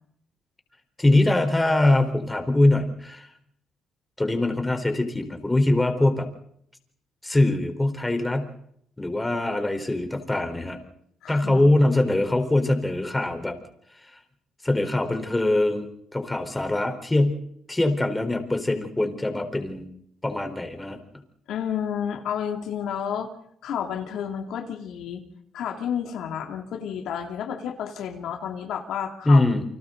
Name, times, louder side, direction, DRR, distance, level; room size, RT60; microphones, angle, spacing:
voice 1, 1.0-3.3 4.2-6.3 7.2-8.5 9.0-10.8 11.3-13.6 14.1-14.2 14.6-17.4 17.7-19.9 20.2-21.0 29.3-29.6, left 2 dB, 15° left, 6 dB, 4.2 m, -22 dB
voice 2, 11.2-11.7 21.5-23.3 23.6-25.2 25.5-29.4, left 8 dB, 80° left, 4 dB, 2.7 m, -31 dB
29.5 x 25.0 x 3.9 m, 0.70 s
cardioid pair, 90°, 0 cm